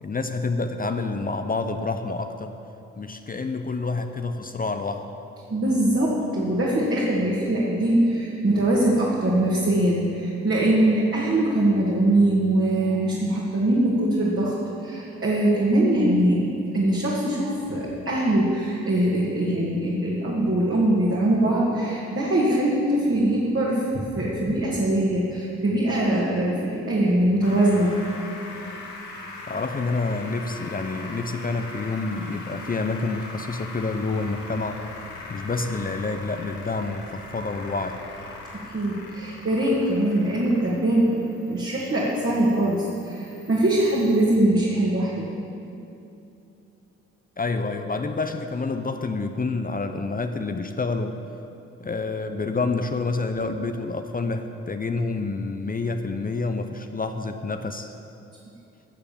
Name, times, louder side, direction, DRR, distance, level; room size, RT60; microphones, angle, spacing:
voice 1, 0.0-2.5 3.0-5.2 29.5-34.8 35.3-38.0 47.4-51.1 51.8-57.9, left 3 dB, 25° left, 7 dB, 0.8 m, -28 dB
voice 2, 5.5-14.6 14.8-27.9 38.7-45.3, right 1 dB, 40° right, -5 dB, 2.4 m, -22 dB
sound 1, 27.4-44.4, left 2 dB, 70° left, 1.7 m, -41 dB
13.5 x 6.9 x 7.2 m, 2.8 s
hypercardioid pair, 40°, 33 cm